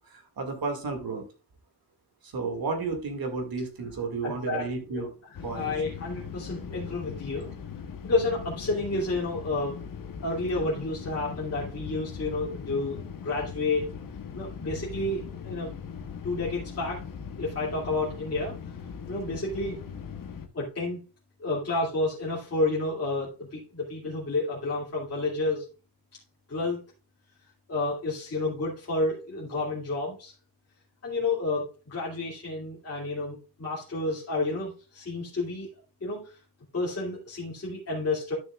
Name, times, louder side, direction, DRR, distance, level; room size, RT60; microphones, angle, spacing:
voice 1, 0.1-1.3 2.2-5.1 5.4-5.7, right 4 dB, 60° right, 4 dB, 2.2 m, -32 dB
voice 2, 4.2-5.1 5.5-7.5 8.0-9.8 10.2-13.9 14.3-15.7 16.2-17.0 17.4-18.6 19.1-19.8 20.5-21.0 21.4-25.7 26.5-26.8 27.7-30.3 31.0-35.7 36.0-36.4 36.7-38.3, left 2 dB, 35° left, -6 dB, 2.5 m, -30 dB
sound 1, 5.3-20.5, left 6 dB, 50° left, 1.1 m, -40 dB
11.5 x 6.8 x 2.4 m, 0.32 s
wide cardioid pair, 140°, 41 cm